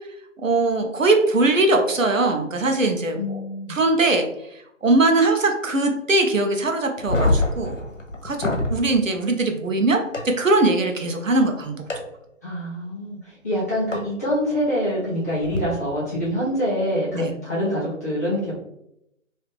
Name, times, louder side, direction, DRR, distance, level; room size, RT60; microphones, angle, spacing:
voice 1, 0.4-3.4 3.7-4.3 4.8-7.8 8.2-10.0 10.4-11.8 17.1-17.3, right 2 dB, 75° right, 4 dB, 0.8 m, -21 dB
voice 2, 3.2-3.7 12.4-18.6, equal, 15° left, -10 dB, 0.8 m, -25 dB
sound 1, 7.0-8.8 10.1-10.2 11.9-12.0 13.9-14.0 15.4-15.6, left 2 dB, 65° left, 1.1 m, -23 dB
3.0 x 2.7 x 3.5 m, 0.80 s
figure-of-eight pair, 145°, 39 cm